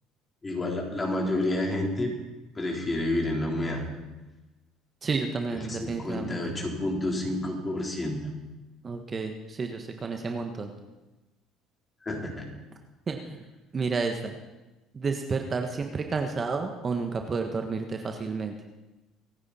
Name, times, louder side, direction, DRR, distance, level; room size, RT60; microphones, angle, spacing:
voice 1, 0.4-2.1 2.5-3.9 5.7-8.3 12.0-12.5, left 1 dB, 25° left, 0 dB, 4.1 m, -29 dB
voice 2, 5.0-6.4 8.8-10.7 13.1-13.4 13.7-14.4 14.9-18.5, right 4 dB, 35° right, 5 dB, 1.4 m, -31 dB
26.0 x 9.7 x 4.4 m, 1.1 s
supercardioid pair, 80°, 0 cm